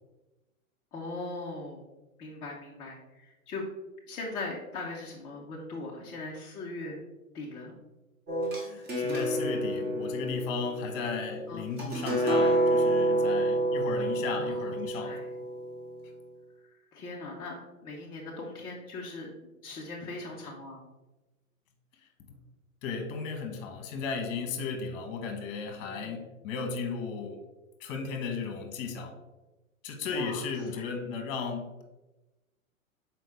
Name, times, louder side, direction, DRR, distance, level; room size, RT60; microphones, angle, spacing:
voice 1, 0.9-1.9 2.2-3.6 4.1-7.0 7.3-7.8 11.5-11.7 14.3-15.3 16.6-19.3 19.6-20.9 25.9-26.2 30.1-30.9, left 2 dB, 10° left, -3 dB, 0.4 m, -40 dB
sound 1, 8.3-16.0, right 1 dB, 20° right, 1.9 m, -29 dB
voice 2, 8.6-15.1 22.8-27.4 27.8-29.2 29.8-31.8, left 5 dB, 40° left, 5 dB, 1.3 m, -35 dB
6.1 x 4.5 x 3.5 m, 1.1 s
hypercardioid pair, 115°, 43 cm